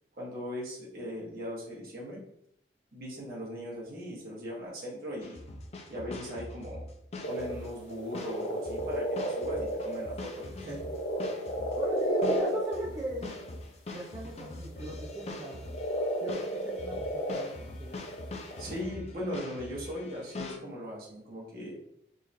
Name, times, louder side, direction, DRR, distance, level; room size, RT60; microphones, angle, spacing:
voice 1, 0.2-2.2 2.9-5.4 5.9-6.8 7.3-10.8 18.6-21.7, equal, 55° right, -5 dB, 1.4 m, -39 dB
sound 1, 5.2-20.6, left 2 dB, 35° left, 0.4 m, -43 dB
sound 2, 7.2-13.5 14.7-18.8, equal, 75° left, 0.7 m, -32 dB
voice 2, 11.7-13.3 13.9-15.6 16.2-18.0, right 1 dB, 20° right, -6 dB, 0.6 m, -40 dB
3.8 x 3.0 x 2.6 m, 0.74 s
head